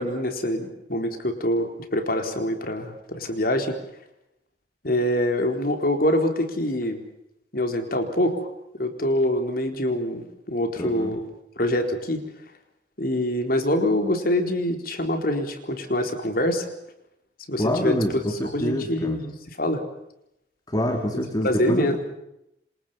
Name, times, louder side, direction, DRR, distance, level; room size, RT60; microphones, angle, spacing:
voice 1, 0.0-3.8 4.8-7.0 7.5-8.5 8.8-11.2 11.6-12.2 13.0-16.7 17.5-18.0 18.5-19.8 21.4-22.0, left 1 dB, 55° left, 5 dB, 4.1 m, -25 dB
voice 2, 10.8-11.1 17.6-19.2 20.7-22.0, equal, 25° left, 4 dB, 3.0 m, -26 dB
28.5 x 26.5 x 5.7 m, 0.83 s
head